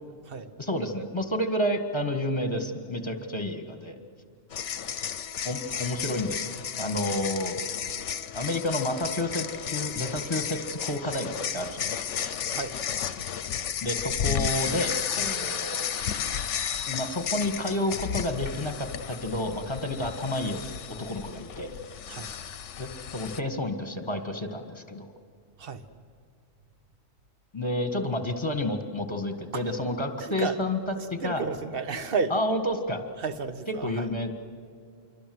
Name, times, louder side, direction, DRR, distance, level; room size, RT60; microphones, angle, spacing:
voice 1, 0.6-4.0 5.4-7.6 8.3-11.9 13.8-15.9 16.9-20.6 20.9-21.7 22.8-25.1 27.5-30.8 31.1-31.4 32.3-33.0 33.8-34.3, left 1 dB, 20° left, 6 dB, 1.8 m, -30 dB
sound 1, 4.5-23.4, left 8 dB, 70° left, 1.1 m, -33 dB
voice 2, 12.2-12.8 22.1-22.3 25.6-25.8 29.5-29.7 30.2-30.6 31.0-32.3 33.2-34.1, right 5 dB, 45° right, 10 dB, 1.3 m, -32 dB
27.0 x 23.5 x 7.9 m, 2.4 s
omnidirectional pair, 1.3 m